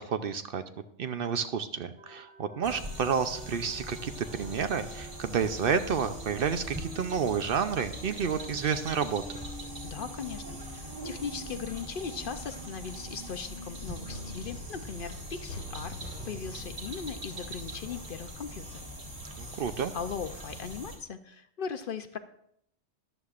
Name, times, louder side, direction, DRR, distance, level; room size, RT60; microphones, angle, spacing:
voice 1, 0.1-0.6 1.0-9.2 19.4-19.9, right 6 dB, 60° right, 10 dB, 0.7 m, -30 dB
sound 1, 2.0-14.4 14.8-14.9 15.3-17.9, right 2 dB, 85° right, 2.6 m, -49 dB
sound 2, 2.6-21.0, equal, 30° right, 2.1 m, -42 dB
voice 2, 9.8-15.9 16.2-18.9 19.9-22.2, left 6 dB, 55° left, 9 dB, 0.7 m, -38 dB
sound 3, 14.1-18.8 19.1-19.2, left 1 dB, 75° left, 1.4 m, -46 dB
13.5 x 11.0 x 2.5 m, 0.71 s
omnidirectional pair, 1.2 m